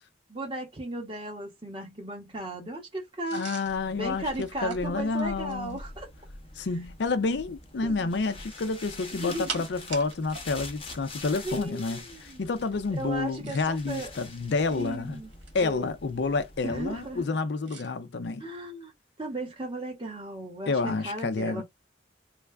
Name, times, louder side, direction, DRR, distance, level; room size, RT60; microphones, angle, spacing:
voice 1, 0.3-3.5 4.0-6.1 7.8-8.1 9.1-9.6 11.4-12.5 13.0-14.1 14.7-15.3 15.6-15.9 16.6-17.3 18.4-18.9 19.2-21.6, right 1 dB, 25° right, 1.4 m, -36 dB
sound 1, 3.2-5.9 8.3-10.5 10.8-10.9 13.2-13.9 14.6-15.7 17.6-17.9, right 5 dB, 80° right, 1.6 m, -43 dB
voice 2, 3.3-5.8 6.6-15.2 15.5-18.4 20.7-21.6, left 3 dB, 65° left, 0.5 m, -29 dB
sound 2, 3.6-17.2, left 2 dB, 30° left, 0.9 m, -45 dB
3.2 x 2.4 x 3.3 m
head